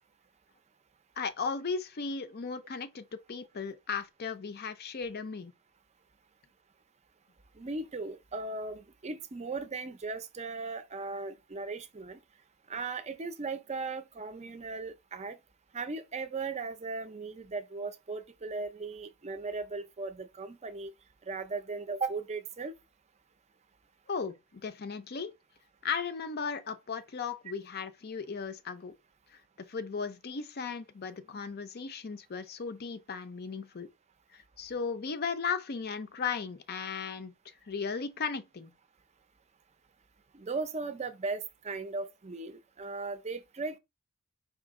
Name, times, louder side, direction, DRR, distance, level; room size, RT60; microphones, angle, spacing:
voice 1, 1.2-5.5 24.1-25.3 25.8-28.9 29.3-33.9 34.3-38.7, left 5 dB, 45° left, 0.5 m, -36 dB
voice 2, 7.6-12.2 12.7-15.4 15.7-20.9 21.3-22.7 40.3-43.8, right 3 dB, 30° right, 0.5 m, -37 dB
4.9 x 2.8 x 3.6 m
head